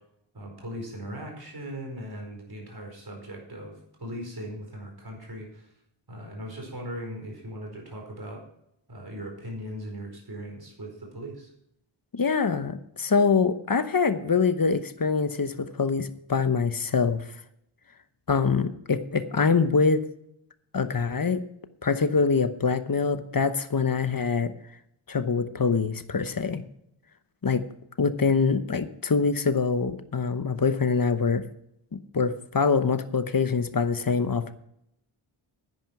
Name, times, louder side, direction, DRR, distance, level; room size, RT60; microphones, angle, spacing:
voice 1, 0.3-3.7 4.0-5.7 6.1-8.4 8.9-11.5, equal, 50° right, 1 dB, 4.5 m, -39 dB
voice 2, 12.1-17.2 18.3-20.0 20.7-21.4 21.8-24.5 25.1-26.6 27.4-27.6 28.0-31.4 32.1-34.5, left 5 dB, 45° left, 11 dB, 1.0 m, -24 dB
10.5 x 9.3 x 5.9 m, 0.75 s
wide cardioid pair, 85°, 50 cm